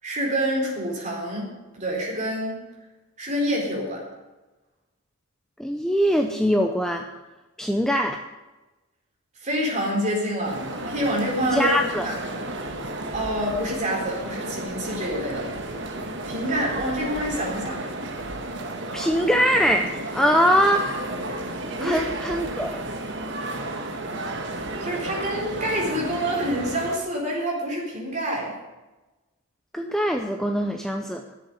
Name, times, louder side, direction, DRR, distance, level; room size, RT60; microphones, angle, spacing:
voice 1, 0.0-2.6 3.2-4.1 9.4-11.7 12.0-12.2 13.1-15.5 16.2-17.9 21.8-22.0 24.8-28.5, equal, 35° right, -2 dB, 4.0 m, -27 dB
voice 2, 5.6-7.1 7.6-8.2 11.5-12.1 18.9-19.9 20.1-20.9 21.8-22.8 29.7-31.2, equal, ahead, 4 dB, 0.6 m, -22 dB
sound 1, 10.4-27.0, right 2 dB, 55° right, 1.6 m, -33 dB
11.5 x 7.8 x 9.4 m, 1.1 s
head